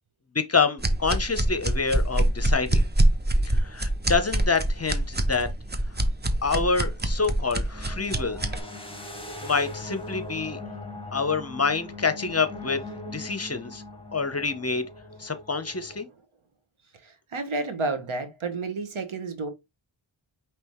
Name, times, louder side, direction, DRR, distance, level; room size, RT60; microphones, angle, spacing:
voice 1, 0.3-2.9 3.5-5.5 5.9-6.0 6.4-8.4 9.4-10.6 11.1-12.8 13.1-13.8 14.1-14.8 15.2-16.1, left 4 dB, 30° left, 0.8 m, -27 dB
sound 1, 0.8-8.6, right 1 dB, 20° right, 0.8 m, -24 dB
sound 2, 5.5-5.7 7.7-16.0, left 2 dB, 10° left, 1.3 m, -40 dB
voice 2, 16.9-19.5, right 3 dB, 80° right, 1.2 m, -31 dB
5.4 x 3.1 x 3.1 m
wide cardioid pair, 55°, 48 cm